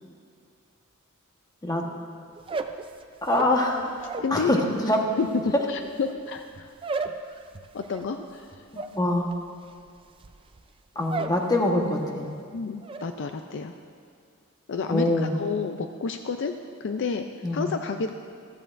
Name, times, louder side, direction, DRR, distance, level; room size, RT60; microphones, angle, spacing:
sound 1, 2.4-4.4 4.7-11.5 11.8-12.3 12.6-13.1, right 4 dB, 25° right, 0.4 m, -35 dB
voice 1, 3.2-3.8 4.3-5.0 5.5-5.6 8.7-9.3 10.9-12.3 14.9-15.3 17.4-17.7, left 1 dB, 20° left, 1 dB, 1.2 m, -24 dB
voice 2, 4.2-4.6 5.2-6.7 7.7-8.6 12.5-13.7 14.7-16.5 16.8-18.1, left 5 dB, 55° left, 6 dB, 0.4 m, -30 dB
14.5 x 14.0 x 2.5 m, 2.2 s
head